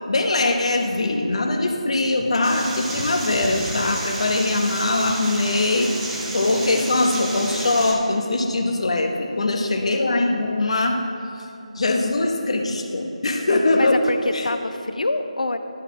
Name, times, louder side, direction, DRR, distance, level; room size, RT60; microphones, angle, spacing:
voice 1, 0.1-5.9 6.3-11.0 11.7-14.0 14.3-14.4, left 2 dB, 55° left, 3 dB, 1.0 m, -22 dB
sound 1, 2.4-7.9, right 2 dB, 5° right, 0.6 m, -31 dB
voice 2, 13.8-15.6, left 2 dB, 80° left, 9 dB, 0.6 m, -26 dB
12.0 x 4.2 x 5.6 m, 3.0 s
figure-of-eight pair, 165°, 4 cm